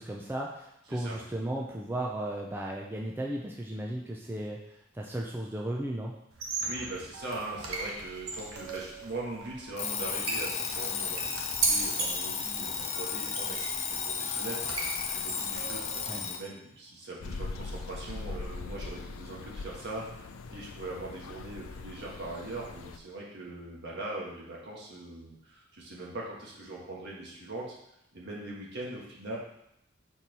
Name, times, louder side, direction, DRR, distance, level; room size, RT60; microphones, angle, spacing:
voice 1, 0.0-6.2 16.1-16.2, right 1 dB, 10° right, -1 dB, 0.5 m, -35 dB
sound 1, 6.3-16.1, right 3 dB, 80° right, 1.1 m, -37 dB
voice 2, 6.6-20.0 20.5-27.7 28.1-29.4, right 2 dB, 55° right, -3 dB, 1.6 m, -41 dB
Alarm, 9.8-16.5, left 6 dB, 35° left, 0.6 m, -34 dB
sound 2, 17.2-23.0, left 3 dB, 75° left, 0.5 m, -41 dB
4.5 x 4.5 x 5.3 m, 0.80 s
head